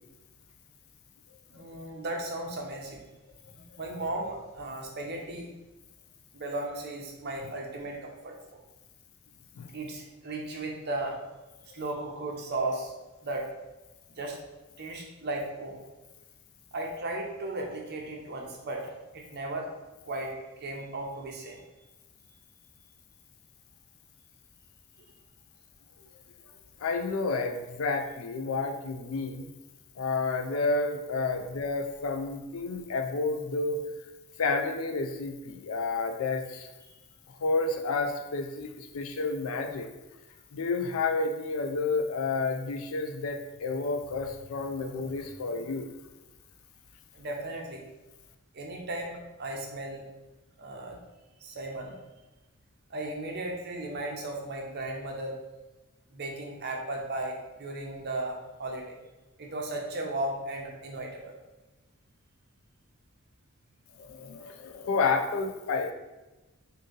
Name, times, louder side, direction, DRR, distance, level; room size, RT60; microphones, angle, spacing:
voice 1, 1.5-3.0 3.5-5.5 6.3-8.6 9.7-11.2 11.7-12.9 13.2-13.5 14.1-14.4 14.8-15.8 16.7-19.7 20.1-20.3 20.6-21.6 31.3-31.4 36.9-37.0 44.8-44.9 47.1-47.8 48.5-50.0 50.6-51.0 51.4-52.0 52.9-55.4 56.1-59.0 59.4-61.3, right 2 dB, 50° right, 0 dB, 0.7 m, -36 dB
voice 2, 26.8-29.5 30.0-33.8 34.4-36.7 37.4-39.9 40.5-45.9 64.0-65.9, left 3 dB, 65° left, 5 dB, 0.4 m, -30 dB
3.7 x 2.6 x 3.8 m, 1.1 s
head